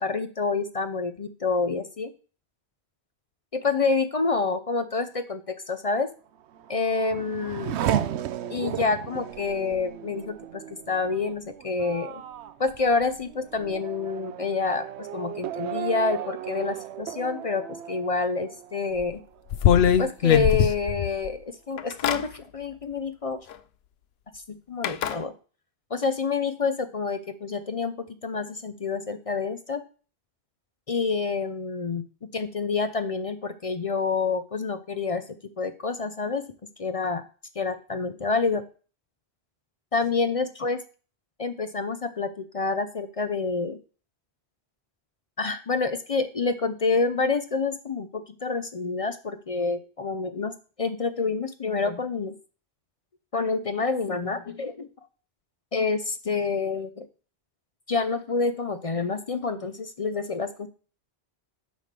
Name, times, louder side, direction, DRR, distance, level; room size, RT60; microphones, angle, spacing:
voice 1, 0.0-2.1 3.5-6.1 6.7-7.7 8.5-12.2 12.6-19.2 20.0-23.5 24.5-25.3 25.9-29.8 30.9-32.0 32.3-35.2 35.6-36.4 36.8-37.2 37.6-38.6 39.9-40.8 41.4-43.8 45.4-50.5 50.8-52.4 53.3-54.9 55.7-57.1 57.9-60.7, left 4 dB, 40° left, 10 dB, 0.5 m, -28 dB
Race car auto racing / Accelerating revving vroom, 6.4-19.6 20.0-20.7, right 10 dB, 80° right, 0.9 m, -35 dB
sound 1, 19.0-19.1 19.5-21.3 21.8-22.2 23.5-23.6 24.8-25.2, left 9 dB, 70° left, 0.8 m, -21 dB
9.1 x 3.4 x 6.6 m, 0.37 s
omnidirectional pair, 1.1 m